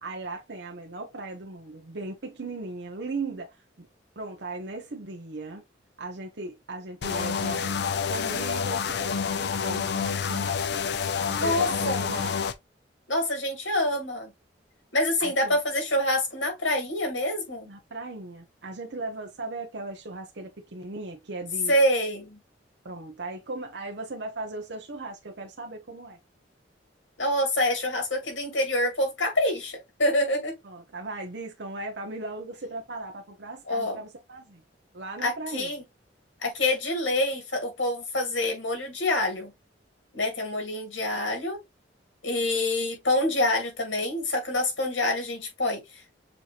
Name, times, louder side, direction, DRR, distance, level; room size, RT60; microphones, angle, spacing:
voice 1, 0.0-3.9 4.2-5.6 6.0-7.8 8.1-10.6 11.3-12.4 15.2-15.6 17.7-21.7 22.8-26.2 30.6-34.6 34.9-35.7, right 3 dB, 65° right, 0.9 m, -37 dB
sound 1, 7.0-12.5, left 6 dB, 60° left, 0.5 m, -28 dB
voice 2, 11.4-12.0 13.1-14.3 14.9-17.7 21.7-22.4 27.2-30.6 33.7-34.0 35.2-35.8 36.4-39.5 40.1-41.6 42.2-46.1, left 1 dB, 85° left, 2.3 m, -26 dB
6.8 x 2.8 x 2.5 m
head